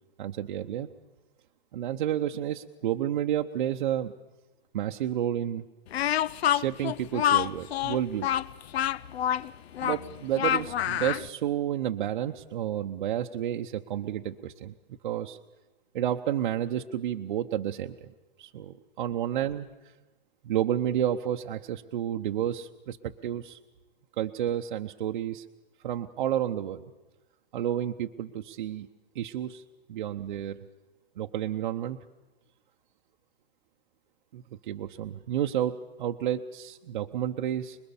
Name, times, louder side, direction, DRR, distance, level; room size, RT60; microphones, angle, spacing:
voice 1, 0.2-0.9 1.7-4.1 4.7-5.7 6.5-8.3 9.8-14.7 15.0-15.4 15.9-18.1 18.4-19.7 20.4-23.6 24.2-25.4 25.8-26.8 27.5-28.9 29.1-29.6 29.9-30.6 31.2-32.0 34.3-37.8, right 11 dB, 55° right, 4 dB, 0.8 m, -30 dB
Speech, 5.9-11.3, left 11 dB, 80° left, 0.7 m, -27 dB
26.5 x 21.0 x 7.1 m, 1.1 s
hypercardioid pair, 165°, 31 cm